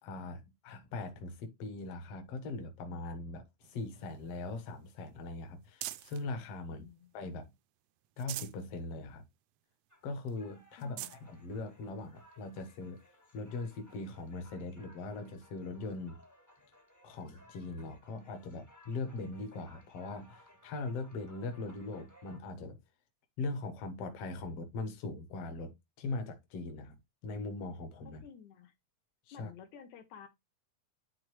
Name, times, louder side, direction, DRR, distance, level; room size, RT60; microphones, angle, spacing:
voice 1, 0.0-6.9 7.1-7.5 8.2-9.2 10.0-13.0 13.3-16.2 17.0-22.8 23.4-27.0 27.2-28.2 29.3-29.5, left 3 dB, 60° left, 2.2 m, -40 dB
sound 1, 3.6-6.3 6.8-7.6 8.0-8.7 9.1-9.2 9.6-9.7 10.3-10.4 10.7-11.2 12.0-12.1 13.9-14.0, right 15 dB, 80° right, 1.5 m, -46 dB
voice 2, 6.7-7.1 10.8-11.2 28.2-28.7 29.3-30.3, left 8 dB, 80° left, 2.4 m, -52 dB
sound 2, 9.9-22.4, left 1 dB, 25° left, 0.4 m, -61 dB
10.5 x 3.6 x 3.2 m
omnidirectional pair, 3.4 m